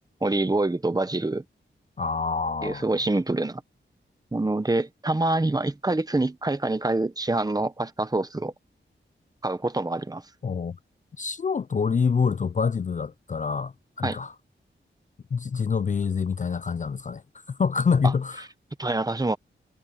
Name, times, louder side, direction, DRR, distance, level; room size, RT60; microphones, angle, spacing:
voice 1, 0.2-1.4 2.6-3.6 4.3-8.5 9.4-10.2 14.0-14.2 18.0-18.1 18.8-19.4, right 2 dB, 20° right, 1.0 m, -26 dB
voice 2, 2.0-2.9 10.4-10.8 11.2-14.3 15.3-17.2 17.5-18.4, left 5 dB, 40° left, 0.4 m, -26 dB
wide cardioid pair, 130°, 20 cm